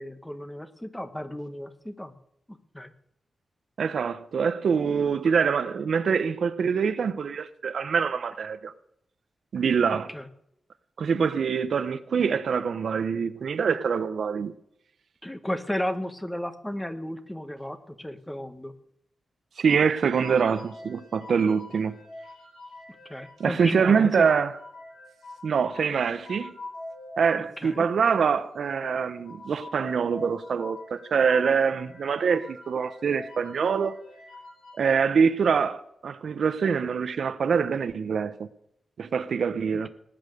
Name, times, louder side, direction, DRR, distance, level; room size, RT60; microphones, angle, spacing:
voice 1, 0.0-2.1 2.5-2.9 9.9-10.3 15.2-18.7 23.1-24.3 27.4-27.8, left 1 dB, 5° left, 1.1 m, -34 dB
voice 2, 3.8-8.7 9.5-10.1 11.0-14.5 19.6-22.0 23.4-24.5 25.4-26.5 27.2-34.0 34.7-38.5 39.0-39.9, right 6 dB, 65° right, 0.9 m, -25 dB
sound 1, 19.7-35.0, left 1 dB, 70° left, 7.8 m, -45 dB
19.0 x 8.9 x 6.5 m
wide cardioid pair, 140°, 0 cm